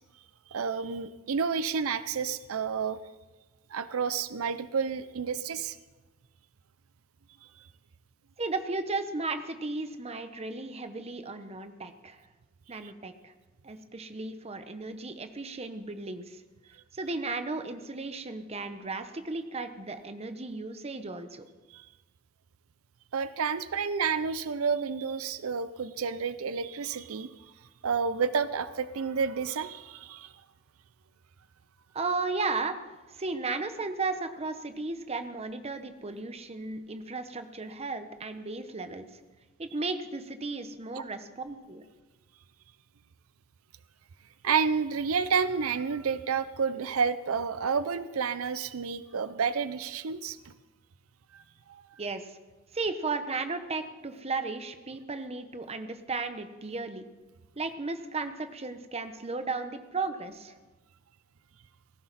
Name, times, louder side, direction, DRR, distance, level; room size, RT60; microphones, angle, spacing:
voice 1, 0.5-3.0 3.7-5.8 12.8-12.9 21.7-21.9 23.1-27.3 27.8-30.3 41.0-41.1 44.4-50.5 51.3-51.4 51.7-51.8, right 6 dB, 90° right, 14 dB, 0.6 m, -30 dB
voice 2, 8.4-12.2 12.7-13.3 13.6-16.4 16.9-21.5 31.9-32.8 33.1-39.0 39.6-41.8 52.0-52.4 52.7-57.0 57.6-60.5, right 3 dB, 30° right, 9 dB, 0.9 m, -35 dB
17.5 x 15.0 x 4.1 m, 1.2 s
head